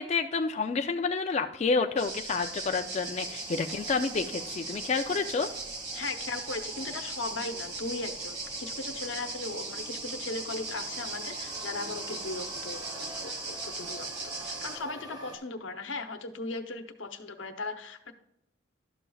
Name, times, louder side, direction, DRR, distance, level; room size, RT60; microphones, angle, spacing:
voice 1, 0.0-5.5, left 4 dB, 35° left, 5 dB, 0.4 m, -29 dB
sound 1, 1.9-15.4, right 1 dB, 20° right, 1.4 m, -48 dB
sound 2, 2.0-14.8, right 3 dB, 60° right, 1.5 m, -38 dB
voice 2, 5.9-18.1, left 3 dB, 90° left, 7 dB, 0.8 m, -38 dB
12.0 x 7.0 x 2.3 m, 0.83 s
head